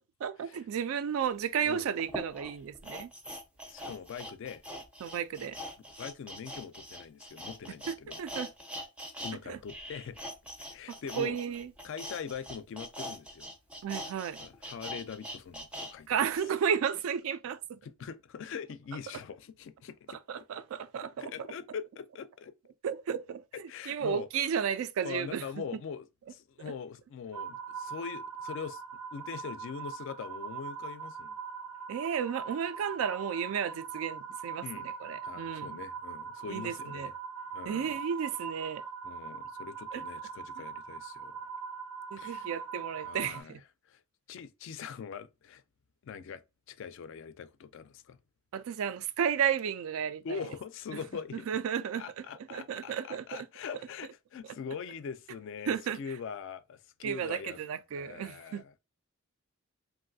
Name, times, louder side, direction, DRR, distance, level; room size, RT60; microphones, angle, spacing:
voice 1, 0.2-3.1 5.0-5.6 7.9-8.5 9.5-9.6 10.9-11.7 13.8-14.4 16.1-17.8 20.3-21.3 22.8-25.4 31.9-35.8 36.5-37.1 37.7-38.8 39.9-40.0 40.6-40.7 42.1-43.6 48.5-50.4 50.9-51.0 51.5-52.3 52.5-53.5 55.7-56.0 57.0-58.6, right 8 dB, 70° right, 0.3 m, -33 dB
sound 1, 1.2-1.3 2.0-9.4 9.6-15.9 16.3-16.4, equal, 5° right, 0.4 m, -42 dB
voice 2, 3.7-4.6 6.0-8.2 9.2-10.3 10.7-11.4 11.8-13.5 14.4-16.2 17.8-20.2 21.2-22.5 23.7-24.3 25.0-28.8 29.1-31.4 34.6-34.9 35.2-37.1 37.5-38.0 39.0-41.5 42.2-42.5 43.0-43.6 43.9-44.0 44.3-45.6 46.0-46.4 46.7-48.2 50.2-51.5 52.0-57.6 57.9-58.7, left 6 dB, 60° left, 0.3 m, -42 dB
sound 2, 27.3-43.4, right 6 dB, 85° right, 0.8 m, -41 dB
3.0 x 2.5 x 2.6 m
head